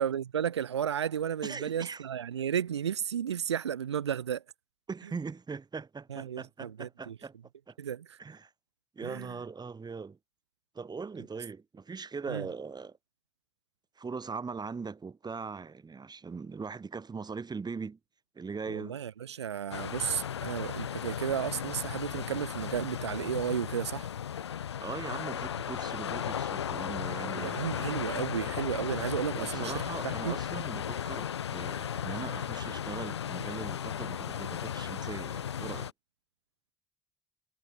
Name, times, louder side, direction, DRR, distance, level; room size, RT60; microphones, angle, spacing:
voice 1, 0.0-4.4 6.1-7.1 7.8-8.2 9.0-9.3 12.3-12.5 18.7-24.1 27.4-30.4, right 9 dB, 90° right, 1.3 m, -33 dB
voice 2, 1.4-2.0 4.9-7.3 7.7-7.8 8.2-8.5 9.0-10.2 10.7-13.0 14.0-18.0 18.3-19.0 24.8-27.6 28.3-28.4 29.3-35.9, right 5 dB, 30° right, 6.2 m, -40 dB
sound 1, 19.7-35.9, left 9 dB, 90° left, 0.9 m, -35 dB
hypercardioid pair, 55°, 14 cm